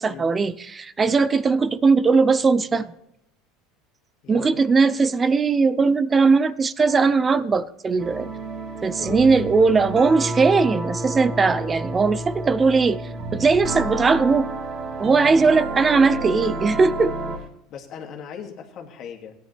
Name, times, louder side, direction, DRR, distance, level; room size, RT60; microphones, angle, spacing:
voice 1, 0.0-2.8 4.3-8.3 8.8-13.0 13.3-14.5 15.0-17.1, right 4 dB, 25° right, 0.5 m, -19 dB
voice 2, 4.2-4.6 9.0-9.5 11.4-11.6 13.7-13.9 15.4-15.6 17.7-19.4, left 7 dB, 50° left, 2.4 m, -38 dB
sound 1, 8.0-17.5, right 2 dB, 50° right, 2.1 m, -30 dB
17.0 x 10.0 x 3.4 m
supercardioid pair, 105°, 0 cm